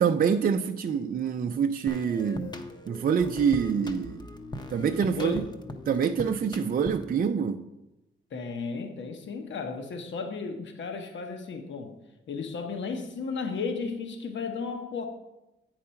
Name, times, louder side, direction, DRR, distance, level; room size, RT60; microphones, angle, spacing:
voice 1, 0.0-2.5 2.9-4.2 4.7-5.4 5.9-7.6, right 7 dB, 45° right, 0.4 m, -26 dB
sound 1, 1.9-7.2, left 2 dB, 20° left, 0.7 m, -40 dB
voice 2, 4.8-5.5 8.3-12.0 12.3-15.1, left 4 dB, 65° left, 1.0 m, -34 dB
8.6 x 4.7 x 5.7 m
cardioid pair, 110°, 20 cm